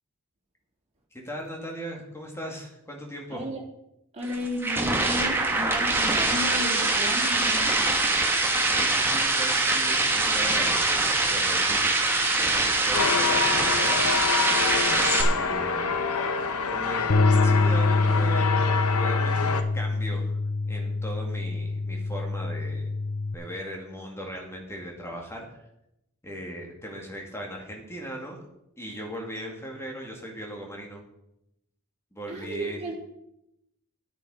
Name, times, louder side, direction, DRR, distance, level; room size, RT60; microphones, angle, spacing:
voice 1, 1.2-3.4 8.6-10.9 11.3-11.8 12.4-14.0 15.2-16.0 16.7-18.5 19.0-20.4 20.7-22.9 23.3-25.6 26.2-28.4 28.8-31.0 32.1-32.8, right 1 dB, 10° left, 0 dB, 2.2 m, -38 dB
voice 2, 3.3-3.6 4.1-7.9 32.3-32.9, left 1 dB, 30° right, -3 dB, 3.1 m, -33 dB
sound 1, 4.2-15.2, right 2 dB, 10° right, 1.4 m, -23 dB
sound 2, 12.9-19.6, left 5 dB, 80° left, 1.0 m, -27 dB
Bass guitar, 17.1-23.3, left 3 dB, 35° left, 0.5 m, -25 dB
9.8 x 9.2 x 4.9 m, 0.84 s
head